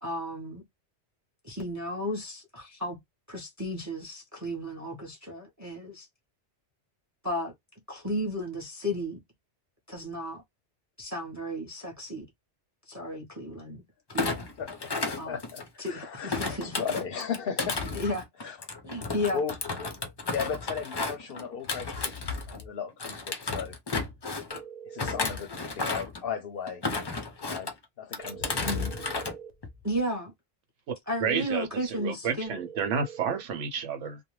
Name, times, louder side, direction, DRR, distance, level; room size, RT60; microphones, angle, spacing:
voice 1, 0.0-0.6 1.4-3.0 3.3-6.1 7.2-7.5 7.9-9.2 9.9-10.4 11.0-12.2 12.9-13.8 14.3-14.4 15.2-15.4 15.8-16.8 17.9-18.3 18.8-19.4 28.6-28.9 29.8-30.3 31.1-32.6, equal, 20° right, 0.7 m, -33 dB
Thump thud, 14.1-15.9 16.3-22.7 23.0-24.6 25.0-26.2 26.7-27.7 28.1-29.3 29.6-30.0, left 3 dB, 40° left, 0.3 m, -33 dB
voice 2, 14.6-18.0 18.4-18.6 19.3-19.5 19.8-19.9 20.3-23.8 24.8-26.8 27.4-27.7 28.0-28.8, left 6 dB, 60° left, 0.7 m, -36 dB
sound 1, 24.5-25.4 28.2-29.6 32.4-33.4, right 8 dB, 55° right, 0.4 m, -44 dB
voice 3, 31.2-34.2, right 6 dB, 90° right, 1.1 m, -30 dB
2.5 x 2.1 x 3.0 m
omnidirectional pair, 1.2 m